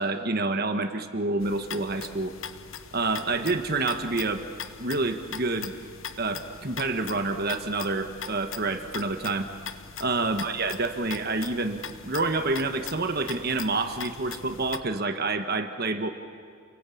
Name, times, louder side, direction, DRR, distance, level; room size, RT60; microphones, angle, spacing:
voice 1, 0.0-2.3 2.9-4.4 4.8-5.7 6.2-9.5 10.0-16.1, right 3 dB, 45° right, 7 dB, 1.4 m, -28 dB
sound 1, 1.4-14.8, left 7 dB, 65° left, 1.1 m, -41 dB
29.0 x 22.5 x 8.5 m, 2.2 s
head